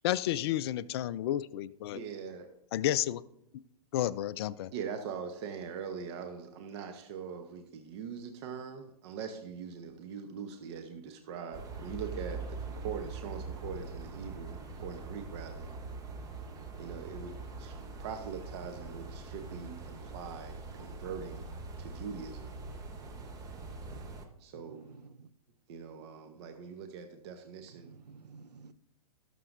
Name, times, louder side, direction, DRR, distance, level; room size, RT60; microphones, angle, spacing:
voice 1, 0.0-2.0 2.7-3.2 3.9-4.7, left 13 dB, 40° left, 0.4 m, -31 dB
voice 2, 1.9-2.5 4.7-15.7 16.8-21.5 21.8-22.5 24.4-24.9 25.7-28.0, right 6 dB, 40° right, 1.0 m, -42 dB
sound 1, 11.5-24.3, right 3 dB, 15° right, 1.0 m, -43 dB
voice 3, 24.5-25.3 27.7-28.7, right 4 dB, 80° right, 0.6 m, -52 dB
18.0 x 6.8 x 2.6 m
figure-of-eight pair, 115°, 20 cm